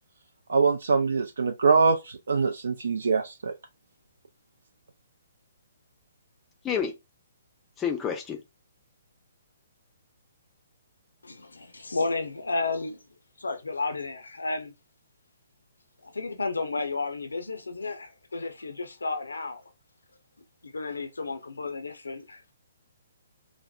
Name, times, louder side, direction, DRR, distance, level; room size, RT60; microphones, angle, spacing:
voice 1, 0.5-3.5, right 4 dB, 65° right, 0.3 m, -23 dB
voice 2, 7.8-8.4, left 7 dB, 15° left, 0.5 m, -29 dB
voice 3, 11.2-13.0 13.4-14.7 16.0-19.6 20.6-22.4, left 3 dB, 80° left, 0.5 m, -32 dB
4.1 x 2.0 x 2.3 m
figure-of-eight pair, 130°, 0 cm